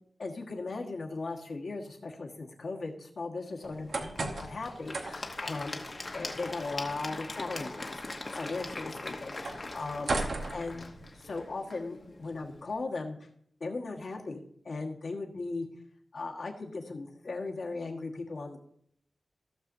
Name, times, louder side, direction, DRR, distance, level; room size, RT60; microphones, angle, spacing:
voice 1, 0.2-5.8 6.1-13.2 13.6-15.7 16.1-18.6, left 3 dB, 60° left, 1 dB, 1.4 m, -38 dB
Applause / Crowd, 3.6-12.7, left 2 dB, 35° left, 0.9 m, -42 dB
sound 1, 3.6-11.4, right 3 dB, 65° right, 1.0 m, -39 dB
15.5 x 6.7 x 2.6 m, 0.65 s
wide cardioid pair, 135°, 0 cm